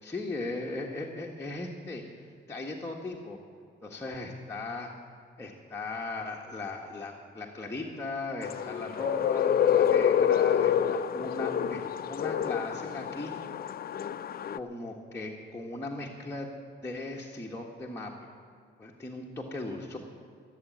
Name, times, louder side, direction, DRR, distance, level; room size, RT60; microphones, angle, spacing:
voice 1, 0.0-2.0 2.5-3.4 3.8-4.9 5.4-13.3 14.5-16.5 16.8-18.1 18.8-20.0, left 2 dB, 10° left, -2 dB, 1.5 m, -38 dB
sound 1, 8.4-14.6, left 9 dB, 50° left, 0.6 m, -27 dB
16.0 x 7.4 x 9.2 m, 2.2 s
cardioid pair, 90°, 20 cm